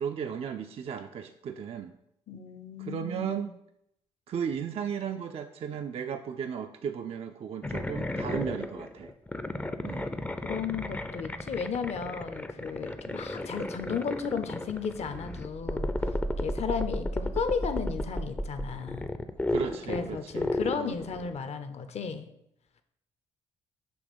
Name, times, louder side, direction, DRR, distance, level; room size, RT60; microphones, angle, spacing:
voice 1, 0.0-1.9 2.8-3.5 4.3-9.1 9.8-10.1 19.5-21.0, right 7 dB, 45° right, 6 dB, 0.4 m, -35 dB
voice 2, 2.3-3.5 10.5-15.9 16.4-19.1 19.9-22.3, left 6 dB, 50° left, 10 dB, 0.7 m, -34 dB
sound 1, 7.6-21.4, left 1 dB, 10° left, 0.5 m, -34 dB
6.2 x 2.9 x 5.1 m, 0.77 s
hypercardioid pair, 55°, 14 cm